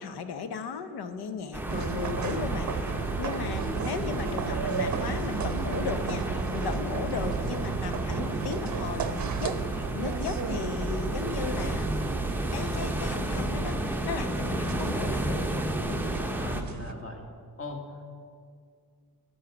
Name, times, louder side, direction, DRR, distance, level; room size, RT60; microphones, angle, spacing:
voice 1, 0.0-11.9 12.5-15.5 15.9-16.2, left 5 dB, 70° left, 10 dB, 0.8 m, -36 dB
sound 1, 1.5-16.6, right 1 dB, 5° right, 0.6 m, -32 dB
sound 2, 1.7-16.9, right 6 dB, 45° right, 0.7 m, -34 dB
voice 2, 16.2-17.2 17.6-18.0, left 3 dB, 35° left, 3 dB, 1.6 m, -41 dB
10.0 x 5.6 x 5.8 m, 2.1 s
cardioid pair, 70°, 40 cm